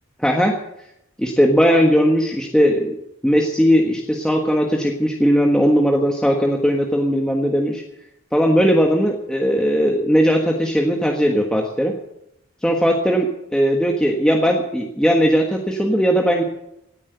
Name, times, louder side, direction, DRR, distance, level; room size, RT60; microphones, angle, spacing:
voice 1, 0.2-0.5 1.2-3.0 3.2-7.8 8.3-11.9 12.6-16.4, equal, 5° left, 0 dB, 1.4 m, -18 dB
16.5 x 10.0 x 8.0 m, 0.81 s
head